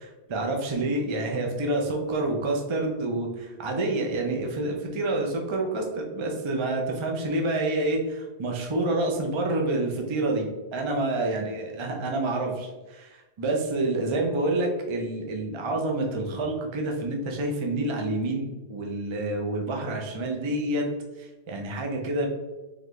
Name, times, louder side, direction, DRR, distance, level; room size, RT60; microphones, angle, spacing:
voice 1, 0.0-20.9 21.2-22.3, right 2 dB, 35° right, 1 dB, 0.5 m, -28 dB
4.0 x 3.3 x 3.1 m, 1.1 s
omnidirectional pair, 1.1 m